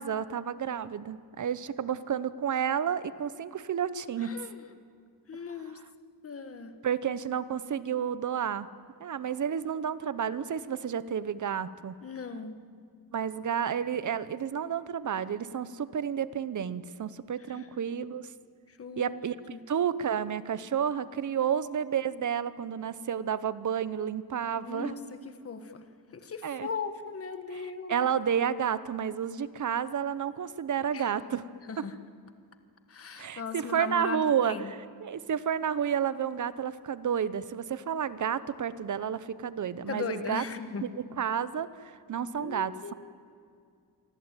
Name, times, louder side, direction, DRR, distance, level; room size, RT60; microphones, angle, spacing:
voice 1, 0.0-4.3 5.7-5.8 6.8-8.7 9.0-12.0 13.1-18.3 19.0-24.9 26.4-26.7 27.5-27.6 27.9-31.5 31.8-31.9 33.2-40.4 40.8-42.9, right 8 dB, 50° right, 15 dB, 0.9 m, -31 dB
voice 2, 4.2-4.7 5.3-5.8 6.2-6.7 12.0-12.5 17.5-17.8 18.7-19.1 19.5-19.6 24.6-25.8 26.1-28.0 30.9-31.1 31.7-32.0 32.9-34.7 39.9-40.9 42.4-42.9, left 5 dB, 35° left, 9 dB, 1.6 m, -38 dB
27.0 x 24.5 x 9.1 m, 2.2 s
wide cardioid pair, 180°, 40 cm